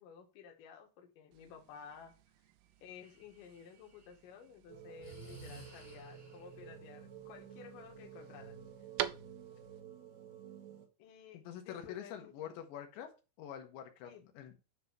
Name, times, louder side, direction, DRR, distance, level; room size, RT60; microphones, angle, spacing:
voice 1, 0.0-2.1 2.8-8.6 11.0-12.6 14.0-14.2, left 7 dB, 60° left, 2.7 m, -54 dB
sound 1, 1.3-9.8, right 13 dB, 90° right, 2.2 m, -47 dB
Breathing, 3.0-4.1 5.0-6.6, right 2 dB, 5° right, 1.6 m, -54 dB
sound 2, 4.7-10.9, right 8 dB, 65° right, 4.4 m, -52 dB
voice 2, 11.3-13.1 13.4-14.6, left 9 dB, 85° left, 3.4 m, -46 dB
9.5 x 3.8 x 5.6 m
omnidirectional pair, 5.1 m